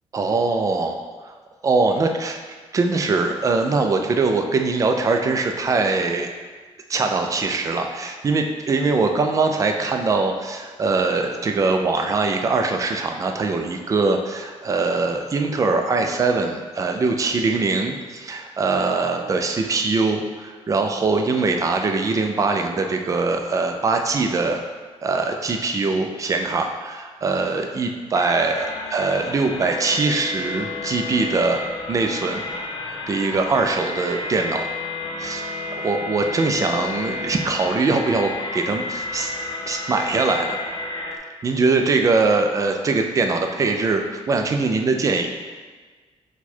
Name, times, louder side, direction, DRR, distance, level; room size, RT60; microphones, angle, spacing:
voice 1, 0.1-1.0 1.2-1.3 1.6-2.4 2.7-6.3 6.9-24.6 25.0-31.6 31.9-32.4 33.1-34.7 35.2-39.3 39.7-40.6 41.4-45.3, right 3 dB, 30° right, 4 dB, 0.4 m, -22 dB
sound 1, 28.1-41.2, left 3 dB, 40° left, 0.4 m, -31 dB
4.5 x 2.3 x 4.3 m, 1.4 s
wide cardioid pair, 150°, 11 cm